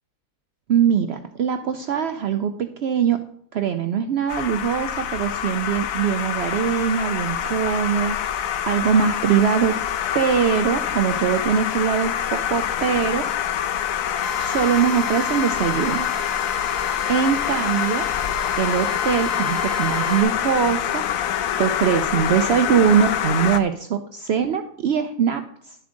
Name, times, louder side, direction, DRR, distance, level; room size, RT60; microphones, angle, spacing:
voice 1, 0.7-3.2 3.5-8.2 8.6-9.8 10.1-13.3 14.4-16.1 17.1-18.1 18.6-21.0 21.6-25.8, right 7 dB, 65° right, 8 dB, 0.7 m, -22 dB
sound 1, 4.3-23.6, left 9 dB, 80° left, 1.1 m, -26 dB
Drill, 14.2-20.2, left 4 dB, 10° left, 1.0 m, -33 dB
11.5 x 7.0 x 3.8 m, 0.65 s
omnidirectional pair, 1.4 m